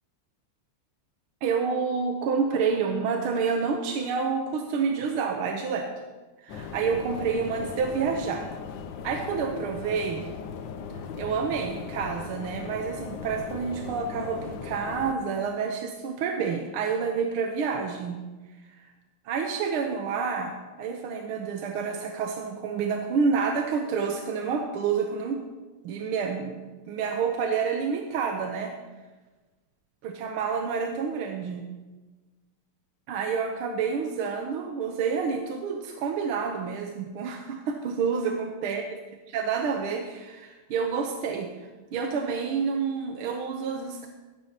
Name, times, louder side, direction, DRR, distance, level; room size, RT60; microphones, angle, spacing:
voice 1, 1.4-5.9 6.4-8.5 9.0-10.3 11.1-18.2 18.7-18.8 19.2-25.4 25.8-28.7 30.0-31.6 33.1-38.8 39.3-41.5 41.9-44.1, right 5 dB, 75° right, 3 dB, 1.7 m, -28 dB
sound 1, 6.5-15.1, left 6 dB, 70° left, 1.3 m, -38 dB
16.0 x 13.0 x 2.9 m, 1.2 s
omnidirectional pair, 2.4 m